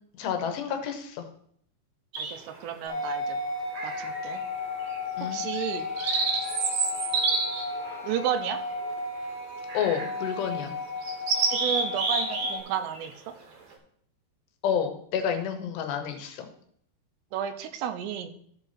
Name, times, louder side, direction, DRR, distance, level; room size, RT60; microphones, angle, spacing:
voice 1, 0.2-1.2 5.2-5.4 9.7-10.7 14.6-16.5, left 8 dB, 80° left, 6 dB, 3.2 m, -29 dB
sound 1, 2.1-2.6 3.7-4.4 4.8-5.0 5.5-9.0 9.7-10.1 10.5-10.6 11.0-12.6 12.9-13.1, right 4 dB, 60° right, 1.9 m, -29 dB
voice 2, 2.2-3.4 3.8-4.4 5.2-5.9 8.0-8.6 11.5-13.1 17.3-18.3, right 9 dB, 90° right, 9 dB, 2.9 m, -32 dB
sound 2, 2.9-12.6, left 3 dB, 55° left, 2.5 m, -34 dB
13.5 x 5.0 x 4.2 m, 0.66 s
omnidirectional pair, 4.8 m